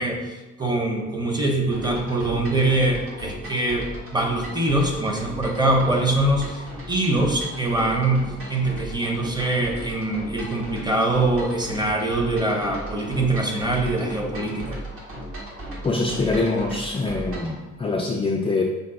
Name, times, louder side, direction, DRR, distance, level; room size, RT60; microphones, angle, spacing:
voice 1, 0.0-3.9 4.1-14.8, right 2 dB, 15° right, 1 dB, 0.8 m, -23 dB
sound 1, 1.7-17.6, right 1 dB, 45° right, 1.3 m, -37 dB
voice 2, 15.8-18.6, left 3 dB, 20° left, 0 dB, 0.3 m, -24 dB
5.2 x 2.2 x 3.8 m, 1.2 s
cardioid pair, 90°, 30 cm